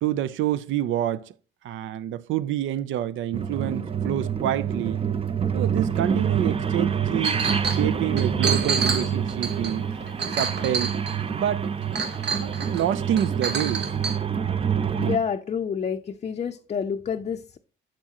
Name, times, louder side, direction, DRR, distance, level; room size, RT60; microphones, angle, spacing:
voice 1, 0.0-1.3 1.6-5.0 5.5-9.9 10.3-10.9 11.3-11.7 12.4-13.9, right 11 dB, 80° right, 0.5 m, -27 dB
sound 1, 3.3-15.2, right 7 dB, 30° right, 0.6 m, -27 dB
Chink clink, 7.2-7.8 8.2-11.3 11.9-12.8 13.2-14.2, right 5 dB, 55° right, 1.2 m, -28 dB
voice 2, 15.0-17.6, left 7 dB, 35° left, 0.5 m, -28 dB
7.4 x 7.1 x 2.9 m
cardioid pair, 90°, 20 cm